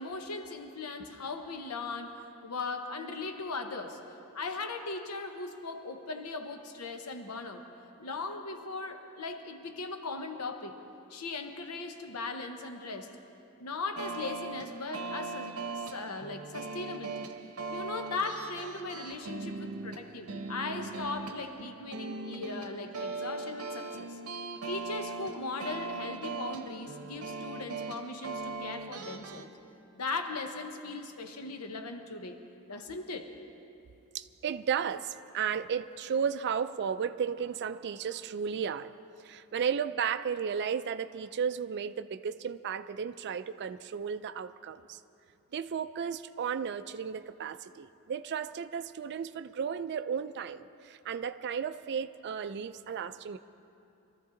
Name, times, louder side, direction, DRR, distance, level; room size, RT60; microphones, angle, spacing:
voice 1, 0.0-4.0 4.3-7.6 8.0-10.8 11.1-13.2 13.6-17.1 17.7-24.2 24.7-29.5 30.0-32.4 32.7-33.3, left 3 dB, 80° left, 6 dB, 0.9 m, -38 dB
sound 1, 14.0-29.5, right 3 dB, 70° right, 0.8 m, -40 dB
voice 2, 34.1-38.9 39.2-45.0 45.5-53.4, right 7 dB, 50° right, 10 dB, 0.4 m, -34 dB
23.0 x 13.5 x 3.8 m, 2.7 s
head